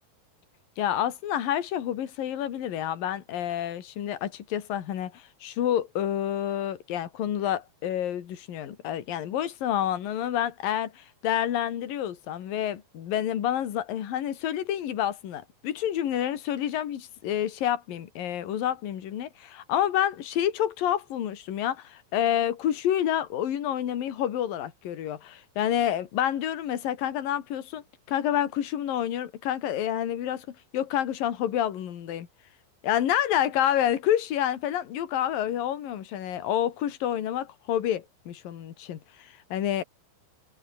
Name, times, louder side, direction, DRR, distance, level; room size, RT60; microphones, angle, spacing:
voice 1, 0.8-27.8 28.1-32.3 32.8-39.8, left 10 dB, 70° left, 3.8 m, -28 dB
omnidirectional pair, 4.2 m